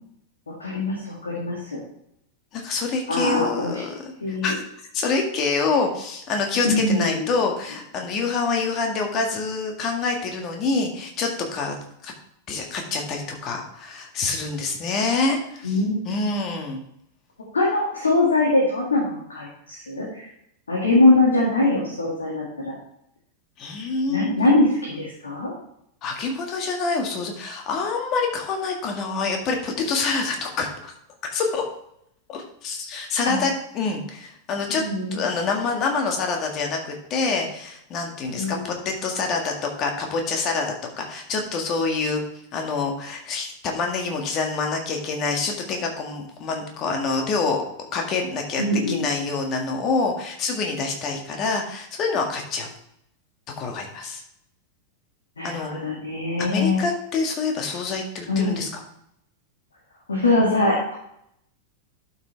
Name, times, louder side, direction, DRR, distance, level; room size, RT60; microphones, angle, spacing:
voice 1, 0.5-1.8 3.1-3.7 4.2-4.5 6.6-7.3 15.6-16.1 17.5-20.3 20.7-22.7 24.1-25.5 33.2-33.4 34.8-35.2 38.3-38.7 48.6-49.0 55.4-56.8 58.3-58.7 60.1-60.9, left 2 dB, 70° left, -4 dB, 2.1 m, -22 dB
voice 2, 2.5-4.6 4.9-11.8 12.0-12.1 12.5-15.8 16.1-16.8 23.6-24.3 26.0-30.9 31.3-31.7 32.3-34.8 35.1-42.2 42.5-47.6 47.9-48.6 48.9-52.7 53.6-54.2 55.4-55.7 56.4-58.8, left 4 dB, 35° left, 2 dB, 1.9 m, -26 dB
11.5 x 6.0 x 3.4 m, 0.75 s
figure-of-eight pair, 90°, 0 cm